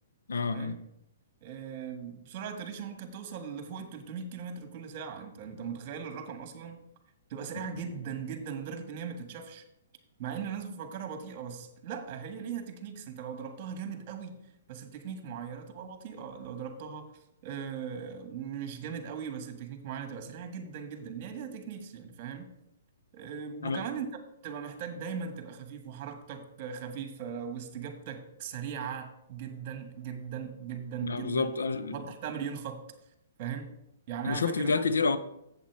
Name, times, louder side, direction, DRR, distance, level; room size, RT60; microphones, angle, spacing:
voice 1, 0.3-0.7 7.6-7.7 23.6-23.8 31.0-32.0 34.2-35.2, left 4 dB, 90° left, 0.7 m, -29 dB
voice 2, 1.4-6.8 7.3-9.6 10.2-14.4 14.7-17.1 17.4-22.5 23.1-24.1 24.4-31.5 31.9-32.8 33.4-33.7 34.1-34.8, right 7 dB, 40° right, 1.6 m, -39 dB
7.7 x 7.4 x 4.8 m
hypercardioid pair, 145°, 0 cm